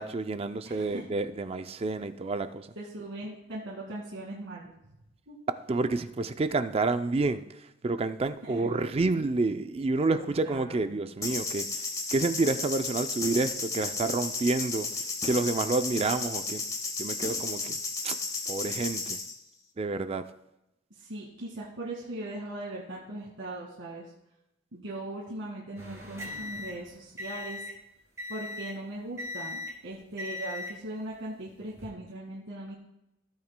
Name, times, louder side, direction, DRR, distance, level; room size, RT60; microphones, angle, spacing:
voice 1, 0.0-2.7 5.7-7.4 7.8-16.6 17.0-17.8 18.0-18.2 18.5-19.2 19.8-20.3, right 3 dB, 30° right, 10 dB, 0.4 m, -29 dB
voice 2, 0.6-1.1 2.8-4.7 5.3-5.4 8.4-8.8 10.1-11.1 20.9-24.1 24.7-27.6 28.3-32.8, right 1 dB, 90° right, -5 dB, 2.1 m, -39 dB
sound 1, 11.2-19.4, left 3 dB, 15° left, 1.2 m, -33 dB
sound 2, 25.8-27.8 28.2-28.8 29.2-29.8 30.2-30.8 31.6-31.9, left 3 dB, 15° right, 2.6 m, -39 dB
16.0 x 8.8 x 2.2 m, 0.88 s
head